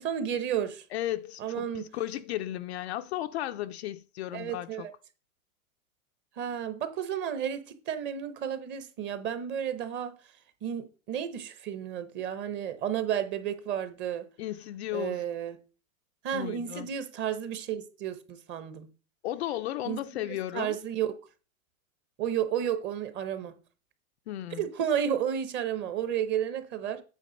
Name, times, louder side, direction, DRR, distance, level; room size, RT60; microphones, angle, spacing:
voice 1, 0.0-0.8 1.4-1.9 4.3-4.9 6.4-10.1 10.6-14.2 14.9-15.6 16.2-18.9 19.9-20.0 20.5-21.1 22.2-23.5 24.6-27.0, right 9 dB, 25° right, 0.8 m, -32 dB
voice 2, 0.9-4.9 14.4-15.2 16.3-16.9 19.2-20.8 24.3-24.6, left 13 dB, 50° left, 0.5 m, -35 dB
8.6 x 3.6 x 6.3 m
hypercardioid pair, 135°, 43 cm